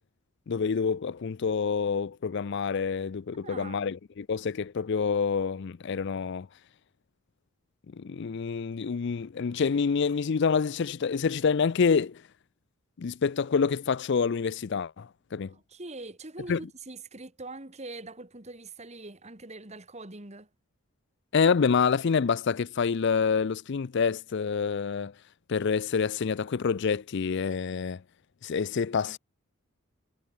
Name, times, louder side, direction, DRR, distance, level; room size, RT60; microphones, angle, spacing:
voice 1, 0.5-6.5 7.9-12.2 13.0-15.5 16.5-16.6 21.3-25.1 25.5-28.0 28.4-29.2, left 5 dB, 55° left, 0.4 m, -27 dB
voice 2, 3.4-3.9 15.5-20.5 29.0-29.2, right 2 dB, 30° right, 2.1 m, -43 dB
head